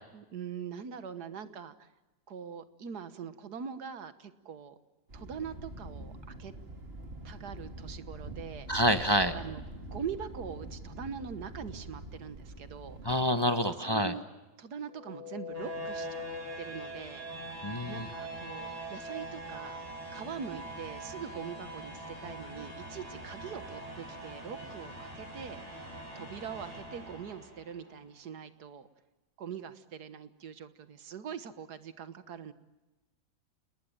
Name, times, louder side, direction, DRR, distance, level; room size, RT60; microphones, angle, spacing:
voice 1, 0.1-1.9 2.3-4.8 5.1-6.5 7.2-8.7 9.3-13.0 13.7-14.2 14.6-16.2 16.6-17.3 17.9-19.8 20.1-25.6 26.2-28.9 29.4-32.5, right 7 dB, 90° right, 12 dB, 1.9 m, -42 dB
Thunder, 5.1-13.2, right 1 dB, 40° right, 2.5 m, -45 dB
voice 2, 8.7-9.3 13.0-14.1 17.6-18.1, equal, 20° left, 8 dB, 1.0 m, -27 dB
sound 1, 14.8-27.8, right 1 dB, 25° right, 6.0 m, -42 dB
29.0 x 20.0 x 8.9 m, 1.1 s
omnidirectional pair, 1.7 m